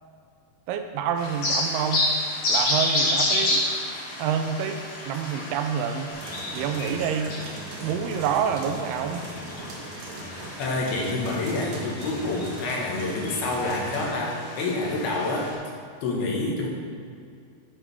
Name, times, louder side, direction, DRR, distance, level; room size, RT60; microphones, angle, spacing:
voice 1, 0.7-2.1 2.5-3.6 4.2-6.1 6.5-7.3 7.8-9.3, right 7 dB, 85° right, 6 dB, 2.5 m, -27 dB
sound 1, 1.2-15.5, left 1 dB, 55° left, 3.5 m, -30 dB
sound 2, 6.1-14.1, right 2 dB, 65° right, 2.6 m, -40 dB
voice 2, 10.6-15.5 16.0-16.7, left 2 dB, 70° left, -2 dB, 3.3 m, -27 dB
9.7 x 8.7 x 3.5 m, 2.3 s
omnidirectional pair, 4.7 m